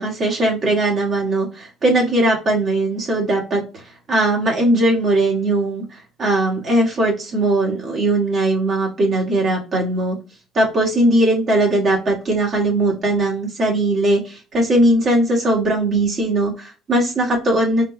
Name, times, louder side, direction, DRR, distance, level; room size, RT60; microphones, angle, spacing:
voice 1, 0.0-10.2 10.5-17.9, right 1 dB, 30° right, -2 dB, 1.6 m, -19 dB
5.0 x 4.1 x 2.2 m, 0.32 s
cardioid pair, 165°, 0 cm